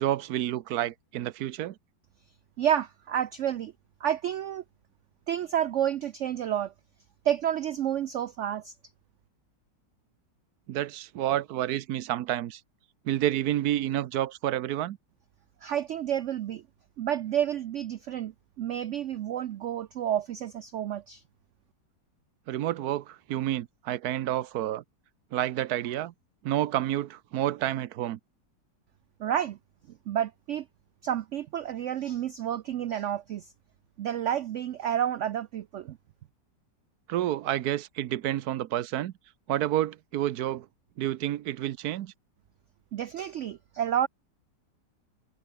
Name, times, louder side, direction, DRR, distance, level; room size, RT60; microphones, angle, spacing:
voice 1, 0.0-1.7 10.7-12.6 13.0-15.0 22.5-24.8 25.3-26.1 26.4-28.2 37.1-39.1 39.5-40.7 41.0-42.1, right 13 dB, 65° right, 1.1 m, -29 dB
voice 2, 2.6-3.7 4.0-4.6 5.3-6.7 7.2-8.7 15.6-16.6 17.0-21.2 29.2-29.6 30.1-30.7 31.0-33.5 34.0-36.0 42.9-44.1, right 10 dB, 90° right, 0.6 m, -30 dB
omnidirectional pair, 1.9 m